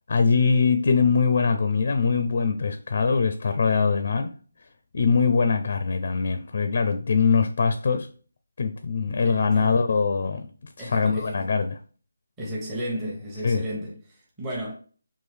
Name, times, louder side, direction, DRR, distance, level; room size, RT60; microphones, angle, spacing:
voice 1, 0.1-4.3 4.9-8.1 8.6-10.5 10.8-11.8 13.4-13.6, left 5 dB, 50° left, 0.5 m, -22 dB
voice 2, 9.2-9.8 10.8-11.5 12.4-14.7, equal, 10° right, 1.1 m, -34 dB
4.5 x 3.0 x 3.5 m
figure-of-eight pair, 165°, 0 cm